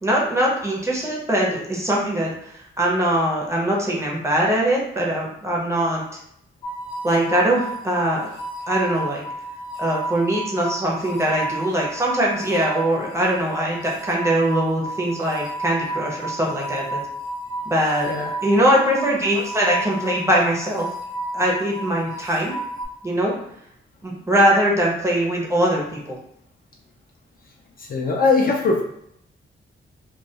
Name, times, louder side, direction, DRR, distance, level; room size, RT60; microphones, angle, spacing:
voice 1, 0.0-6.0 7.0-8.3 8.7-9.2 9.8-17.0 17.6-18.1 18.4-20.9 21.3-22.6 23.0-23.3 24.0-26.2, right 1 dB, 15° right, -3 dB, 0.5 m, -21 dB
sound 1, 6.6-22.9, right 2 dB, 20° left, 0.7 m, -32 dB
voice 2, 27.8-28.8, left 4 dB, 45° left, 0 dB, 0.4 m, -20 dB
2.2 x 2.2 x 2.7 m, 0.73 s
wide cardioid pair, 145°, 21 cm